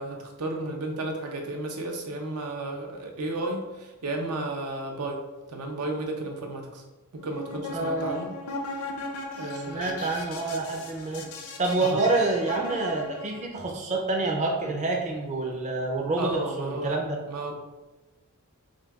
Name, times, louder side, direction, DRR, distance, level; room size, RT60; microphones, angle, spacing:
voice 1, 0.0-5.2 5.5-6.8 7.1-8.3 9.4-10.0 11.8-12.1 16.2-17.0 17.3-17.5, right 2 dB, 85° right, 2 dB, 0.6 m, -33 dB
sound 1, 7.2-13.5, left 2 dB, 75° left, 0.5 m, -38 dB
voice 2, 7.7-8.2 9.5-11.2 11.6-17.2, right 3 dB, 30° right, 0 dB, 0.4 m, -27 dB
6.1 x 2.2 x 2.3 m, 1.2 s
head